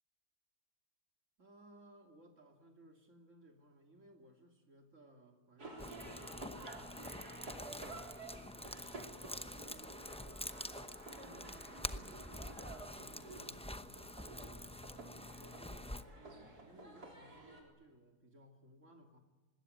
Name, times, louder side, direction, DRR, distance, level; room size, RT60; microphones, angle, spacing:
voice 1, 1.4-6.9 7.6-10.3 11.2-14.7 15.2-19.2, right 1 dB, 50° right, 3 dB, 3.2 m, -62 dB
sound 1, 5.6-17.6, right 2 dB, 80° right, 4.6 m, -52 dB
sound 2, 5.8-16.0, left 1 dB, 5° left, 0.4 m, -47 dB
25.0 x 20.5 x 9.9 m, 1.2 s
omnidirectional pair, 1.6 m